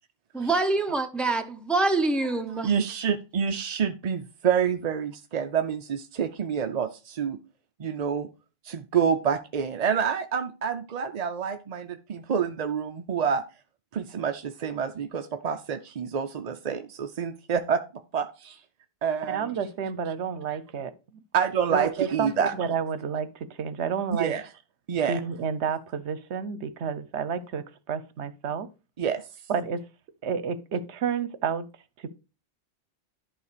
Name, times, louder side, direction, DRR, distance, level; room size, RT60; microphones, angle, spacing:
voice 1, 0.3-2.7, right 3 dB, ahead, 0.8 m, -25 dB
voice 2, 2.6-7.4 7.8-8.3 8.6-13.4 13.9-17.8 18.1-18.6 19.0-19.5 21.3-22.5 24.1-24.4 24.9-25.2 29.0-29.2, right 7 dB, 45° right, 0.5 m, -27 dB
voice 3, 19.3-20.9 21.7-24.3 25.1-28.7 29.5-29.8 30.2-31.7 32.0-32.1, right 6 dB, 75° right, 1.0 m, -30 dB
11.0 x 3.7 x 6.7 m
omnidirectional pair, 1.2 m